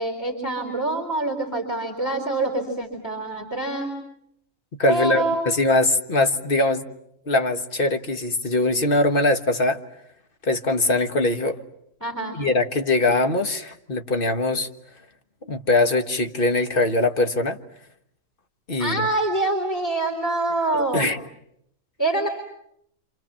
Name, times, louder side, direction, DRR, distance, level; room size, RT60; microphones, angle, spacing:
voice 1, 0.0-3.9 4.9-5.5 12.0-12.4 18.8-21.1 22.0-22.3, right 2 dB, 10° left, 0 dB, 3.8 m, -25 dB
voice 2, 4.8-6.9 7.3-9.8 10.4-11.6 12.3-14.7 15.5-17.6 18.7-19.1 20.9-21.2, left 2 dB, 40° left, 7 dB, 1.5 m, -22 dB
29.5 x 27.0 x 7.5 m, 0.76 s
omnidirectional pair, 1.5 m